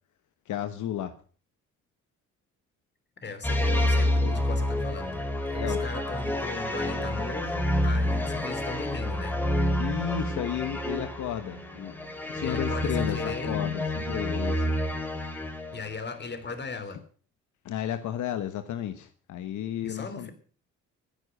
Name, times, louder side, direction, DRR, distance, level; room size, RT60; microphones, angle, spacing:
voice 1, 0.5-1.1 5.6-5.8 9.8-11.9 12.3-14.8 17.6-20.3, left 11 dB, 75° left, 10 dB, 1.2 m, -33 dB
voice 2, 3.2-9.4 12.4-13.6 15.7-17.0 19.8-20.3, left 4 dB, 35° left, 11 dB, 3.2 m, -38 dB
sound 1, 3.4-16.0, left 1 dB, 5° left, 3.2 m, -28 dB
15.0 x 10.5 x 6.5 m, 0.41 s
cardioid pair, 90°, 30 cm